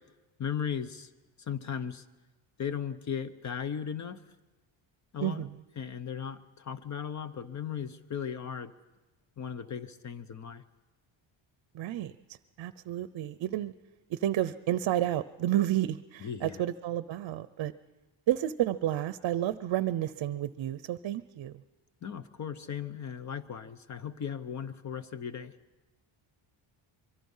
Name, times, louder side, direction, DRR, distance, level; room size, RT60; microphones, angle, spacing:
voice 1, 0.4-1.1 1.4-2.0 2.6-4.2 5.1-5.5 5.8-8.7 9.4-10.6 16.2-16.6 22.0-25.5, left 7 dB, 35° left, 13 dB, 1.0 m, -37 dB
voice 2, 11.7-12.1 12.6-13.7 14.1-17.7 18.3-21.6, right 13 dB, 60° right, 15 dB, 0.7 m, -30 dB
24.5 x 23.5 x 5.6 m, 1.1 s
cardioid pair, 145°, 49 cm